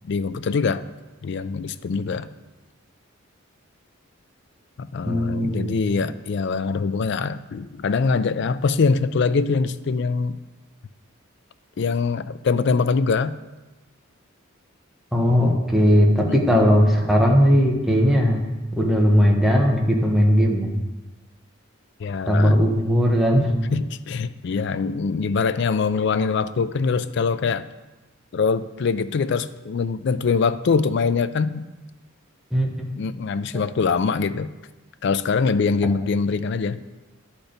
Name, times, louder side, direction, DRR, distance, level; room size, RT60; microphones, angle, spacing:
voice 1, 0.0-0.8 1.2-2.3 4.8-10.4 11.8-13.3 16.3-16.7 22.0-22.6 23.7-27.6 28.3-31.6 33.0-34.5 35.0-36.8, left 5 dB, 55° left, 13 dB, 0.4 m, -23 dB
voice 2, 5.1-5.8 15.1-18.4 18.8-20.7 22.3-23.6 32.5-32.7 33.5-33.6, equal, ahead, -1 dB, 1.0 m, -18 dB
11.5 x 4.4 x 5.1 m, 1.1 s
head